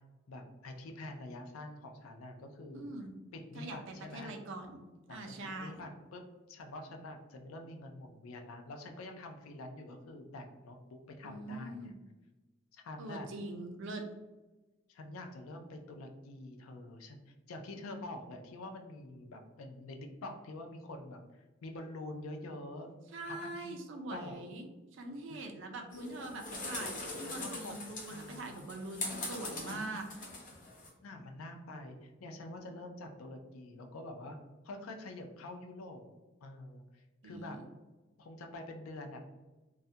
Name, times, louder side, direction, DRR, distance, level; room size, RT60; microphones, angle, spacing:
voice 1, 0.3-2.9 3.3-4.3 5.1-5.2 5.6-6.2 6.5-11.9 12.7-13.3 14.9-22.9 23.2-23.7 24.1-24.4 25.3-25.5 27.2-27.8 28.1-28.7 29.7-29.9 31.0-34.4 34.6-36.1 36.4-37.6 38.2-39.3, left 2 dB, 80° left, 4 dB, 0.4 m, -46 dB
voice 2, 2.7-3.1 3.5-4.8 5.1-5.9 11.2-11.9 13.0-14.0 23.1-30.1 37.2-37.6, right 2 dB, 65° right, 4 dB, 0.4 m, -43 dB
sound 1, 25.9-30.9, left 2 dB, 40° left, 0.7 m, -42 dB
2.3 x 2.1 x 2.6 m, 1.1 s
head